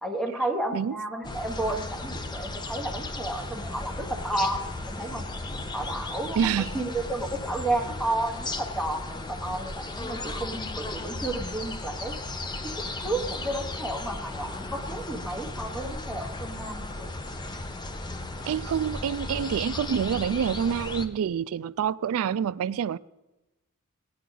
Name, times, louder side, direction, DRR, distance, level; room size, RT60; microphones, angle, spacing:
voice 1, 0.0-5.2 5.7-12.1 12.6-17.2, right 2 dB, 5° left, 1.0 m, -32 dB
sound 1, 1.2-21.1, left 2 dB, 20° left, 0.6 m, -35 dB
voice 2, 6.4-6.8 18.5-23.0, right 8 dB, 65° right, 0.3 m, -27 dB
18.0 x 9.2 x 3.9 m
head